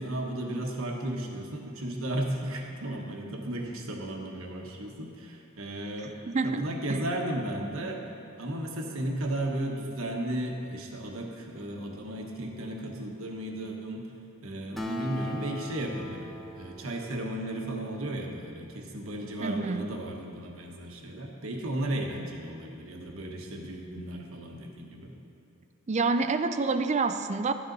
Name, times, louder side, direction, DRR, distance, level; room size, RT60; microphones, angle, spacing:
voice 1, 0.0-6.1 6.4-8.0 8.4-14.1 14.4-25.1, right 1 dB, 80° right, 1 dB, 1.3 m, -34 dB
voice 2, 6.3-7.0 19.4-19.9 25.9-27.5, right 4 dB, 35° right, 10 dB, 0.4 m, -28 dB
Acoustic guitar, 14.8-18.5, left 1 dB, ahead, 0.8 m, -41 dB
12.5 x 9.6 x 4.0 m, 2.6 s
head